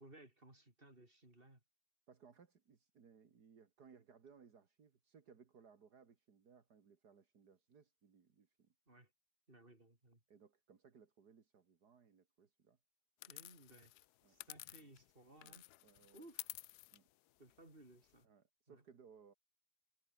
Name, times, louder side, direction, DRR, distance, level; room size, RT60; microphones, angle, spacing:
voice 1, 0.0-1.6 8.9-9.1 9.5-10.2 13.3-13.9 14.3-15.7 16.1-16.5 17.4-18.3 18.7-18.8, right 2 dB, 30° right, 5.7 m, -61 dB
voice 2, 2.1-8.7 10.3-12.8 14.2-14.4 15.4-16.3 16.9-17.1 18.2-19.3, right 6 dB, 75° right, 2.5 m, -64 dB
sound 1, 13.2-15.1 15.4-18.2, left 16 dB, 75° left, 1.1 m, -53 dB
omnidirectional pair, 1.7 m